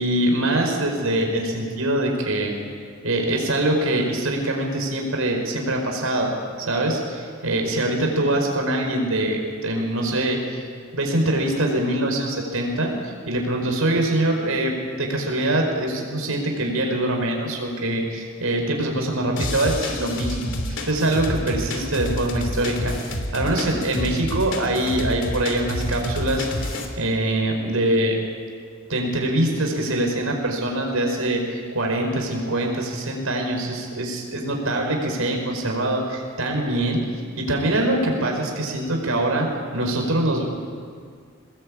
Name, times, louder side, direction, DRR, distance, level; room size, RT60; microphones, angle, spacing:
voice 1, 0.0-2.5 3.0-6.3 6.6-10.6 10.9-28.2 28.9-40.4, right 1 dB, 85° right, 2 dB, 5.0 m, -24 dB
sound 1, 19.4-26.9, left 1 dB, 60° left, 3.1 m, -29 dB
23.5 x 20.0 x 8.7 m, 2.1 s
head